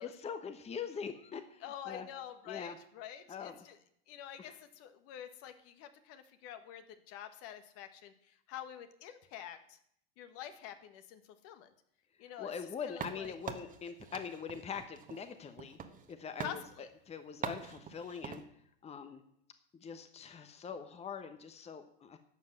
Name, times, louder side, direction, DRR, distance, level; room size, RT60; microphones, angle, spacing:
voice 1, 0.0-2.1 2.5-2.8 3.3-3.6 4.4-4.6 12.4-15.8 16.1-16.6 17.1-18.4 18.8-19.2 19.8-22.2, left 6 dB, 20° left, 9 dB, 1.1 m, -43 dB
voice 2, 1.6-3.8 4.1-8.1 8.5-9.8 10.2-11.7 12.2-12.5 12.8-13.3 16.4-16.9, left 10 dB, 50° left, 8 dB, 1.5 m, -47 dB
Indoor Wooden Utensils Noises Scrape Various, 13.0-16.1 16.4-16.6 17.4-18.4, right 7 dB, 25° right, 1.4 m, -44 dB
12.0 x 7.6 x 7.3 m, 0.69 s
hypercardioid pair, 85°, 30 cm